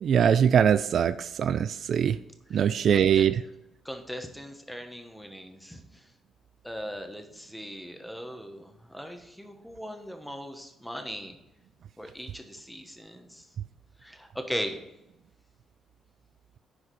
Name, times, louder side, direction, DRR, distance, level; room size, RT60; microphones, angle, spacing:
voice 1, 0.0-2.2 2.5-3.3, right 8 dB, 60° right, 14 dB, 0.3 m, -22 dB
voice 2, 2.5-3.3 3.8-6.0 6.6-11.4 12.0-13.5 14.0-14.8, equal, ahead, 5 dB, 1.3 m, -39 dB
9.9 x 4.9 x 4.8 m, 0.87 s
cardioid pair, 90°, 0 cm